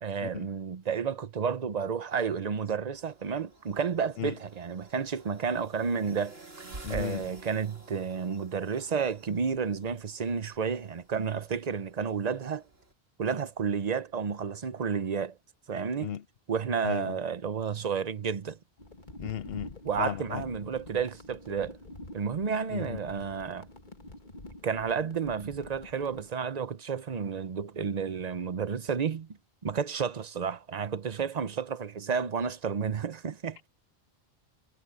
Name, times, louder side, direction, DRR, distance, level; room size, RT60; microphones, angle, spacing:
voice 1, 0.0-6.4 6.9-12.6 13.2-15.4 15.7-16.1 16.5-18.6 19.8-21.8 22.1-23.7 24.6-29.3 29.6-33.6, right 6 dB, 45° right, 0.9 m, -31 dB
sound 1, 2.9-12.9, right 2 dB, 75° right, 2.9 m, -49 dB
voice 2, 6.8-7.2 16.0-16.2 16.8-17.1 19.2-20.4 22.7-23.0, left 10 dB, 70° left, 0.8 m, -35 dB
sound 2, 18.8-26.3, left 1 dB, 50° left, 2.2 m, -47 dB
omnidirectional pair, 1.0 m